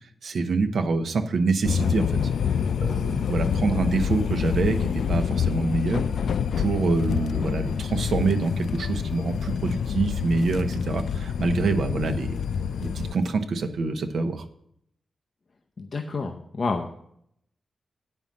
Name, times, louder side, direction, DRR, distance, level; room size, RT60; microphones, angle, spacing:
voice 1, 0.2-2.1 2.8-6.0 6.6-12.4 12.8-14.4, right 4 dB, 65° right, 7 dB, 1.0 m, -26 dB
sound 1, 1.6-13.1, left 7 dB, 85° left, 0.3 m, -27 dB
voice 2, 15.8-16.9, left 4 dB, 40° left, 3 dB, 0.7 m, -29 dB
9.0 x 5.5 x 7.4 m, 0.71 s
wide cardioid pair, 175°, 0 cm